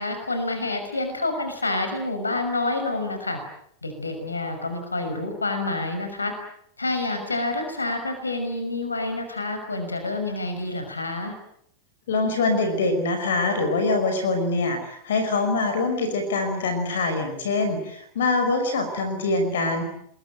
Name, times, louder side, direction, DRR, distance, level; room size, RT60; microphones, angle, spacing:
voice 1, 0.0-3.4 3.8-6.3 6.8-11.3, left 2 dB, 80° left, 7 dB, 6.1 m, -28 dB
voice 2, 12.1-19.8, left 3 dB, 60° left, 8 dB, 5.5 m, -24 dB
27.5 x 22.0 x 9.1 m, 0.69 s
figure-of-eight pair, 90°, 0 cm